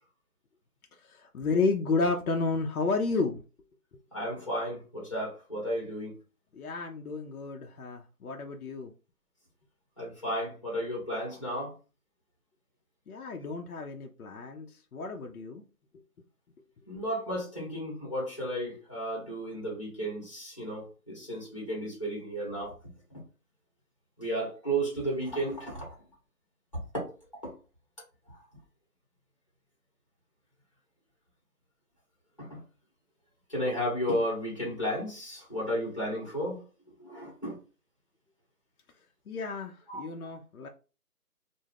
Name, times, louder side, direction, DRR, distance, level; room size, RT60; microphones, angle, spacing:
voice 1, 1.0-3.4 6.5-8.9 13.1-15.6 39.3-40.7, left 3 dB, 65° left, 0.5 m, -31 dB
voice 2, 4.1-6.1 10.0-11.7 16.9-22.7 23.1-23.2 24.2-26.0 27.4-27.5 32.4-32.6 33.5-36.6 37.0-37.6 39.9-40.0, equal, 20° left, 0.8 m, -33 dB
2.3 x 2.0 x 3.3 m
figure-of-eight pair, 170°, 47 cm